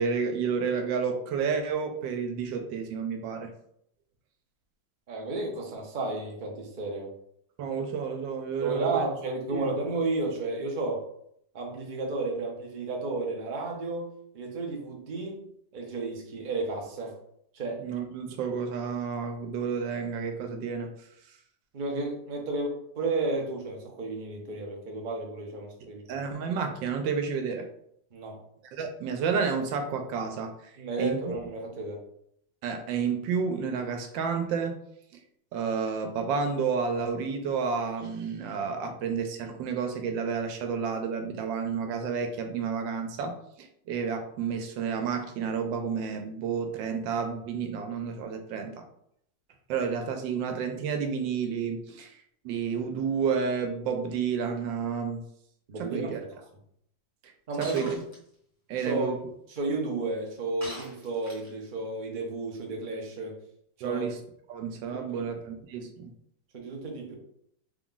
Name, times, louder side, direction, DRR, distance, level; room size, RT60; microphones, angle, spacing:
voice 1, 0.0-3.5 7.6-9.1 9.5-9.7 17.8-20.9 26.1-27.7 28.8-30.7 31.0-31.2 32.6-34.8 35.5-48.8 49.7-55.2 55.8-56.2 57.2-57.3 57.6-58.0 58.7-59.2 63.8-64.2 64.5-66.1, right 6 dB, 85° right, 6 dB, 1.3 m, -30 dB
voice 2, 5.1-7.1 8.6-11.0 11.5-14.1 14.3-15.4 15.7-17.1 17.5-17.8 21.7-26.2 28.1-28.4 30.8-32.0 55.7-56.2 57.5-58.0 58.8-59.1 59.5-63.4 63.8-64.0 64.9-65.3 66.5-67.1, right 2 dB, 65° right, 0 dB, 0.4 m, -32 dB
Shatter, 57.6-58.2 60.6-61.6, equal, 10° left, 1.2 m, -42 dB
3.6 x 2.4 x 3.7 m, 0.72 s
omnidirectional pair, 2.0 m